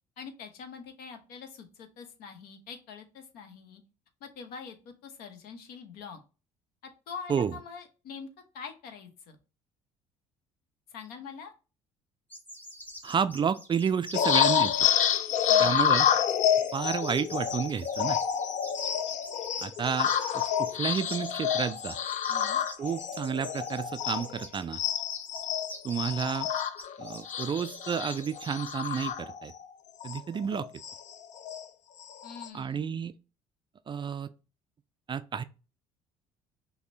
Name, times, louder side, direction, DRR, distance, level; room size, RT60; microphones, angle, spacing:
voice 1, 0.2-3.8 4.2-6.2 7.1-8.3 8.5-9.4 10.9-11.5 15.5-15.8 22.3-22.6 32.2-33.0, left 6 dB, 65° left, 0.9 m, -44 dB
sound 1, 12.3-29.1, equal, 10° left, 1.4 m, -46 dB
voice 2, 13.0-14.9 15.6-16.1 16.7-18.2 19.6-22.0 22.8-24.8 25.8-26.5 27.0-29.5 30.0-30.7 32.5-33.1 33.9-34.3 35.1-35.4, right 7 dB, 30° right, 0.3 m, -31 dB
sound 2, 14.1-24.4 24.7-29.6 30.0-30.2 30.5-31.6 32.0-32.5, left 9 dB, 50° left, 0.5 m, -28 dB
5.8 x 2.1 x 2.7 m
hypercardioid pair, 60°, 17 cm